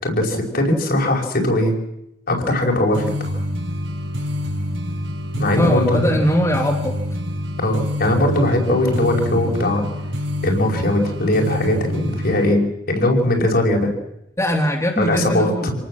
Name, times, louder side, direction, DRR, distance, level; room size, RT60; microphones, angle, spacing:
voice 1, 0.0-1.7 2.3-3.4 5.4-6.1 7.6-9.8 10.4-13.9 15.0-15.7, left 1 dB, 55° left, 1 dB, 5.3 m, -20 dB
sound 1, 2.9-12.5, left 1 dB, 80° right, 5.4 m, -26 dB
voice 2, 5.5-7.0 14.4-15.8, equal, 15° left, -1 dB, 3.2 m, -20 dB
27.5 x 19.0 x 7.6 m, 0.84 s
head